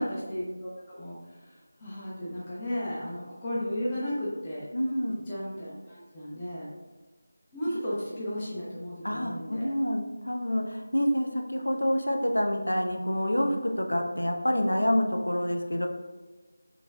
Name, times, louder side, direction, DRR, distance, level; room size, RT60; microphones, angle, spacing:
voice 1, 0.0-4.7 5.3-6.7 7.5-9.7, equal, 20° left, -8 dB, 0.8 m, -34 dB
voice 2, 4.7-5.2 9.0-15.9, equal, 75° left, 3 dB, 0.5 m, -27 dB
4.2 x 3.3 x 2.3 m, 1.3 s
figure-of-eight pair, 165°, 0 cm